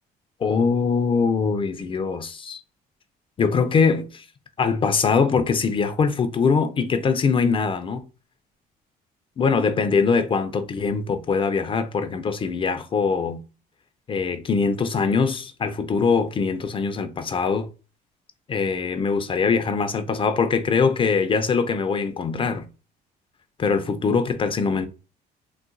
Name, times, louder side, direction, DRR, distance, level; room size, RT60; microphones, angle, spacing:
voice 1, 0.4-2.6 3.4-4.2 4.6-8.0 9.4-13.4 14.1-17.7 18.5-22.7 23.6-24.9, left 5 dB, 30° left, 0.4 m, -22 dB
3.9 x 2.1 x 2.4 m
cardioid pair, 110°, 17 cm